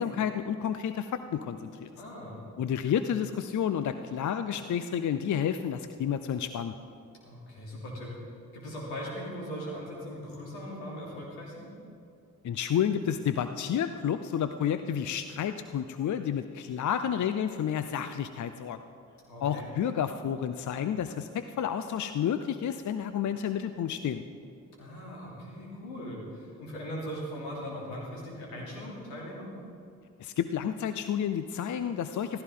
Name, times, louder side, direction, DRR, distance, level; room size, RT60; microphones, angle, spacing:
voice 1, 0.0-1.9 2.6-6.7 12.4-18.8 19.4-24.2 30.2-32.4, left 8 dB, 50° left, 10 dB, 0.6 m, -30 dB
voice 2, 2.0-2.4 7.2-8.1 8.5-11.7 19.3-19.7 24.8-29.5, equal, 85° left, -3 dB, 3.1 m, -39 dB
15.0 x 14.5 x 3.8 m, 2.5 s
hypercardioid pair, 45°, 39 cm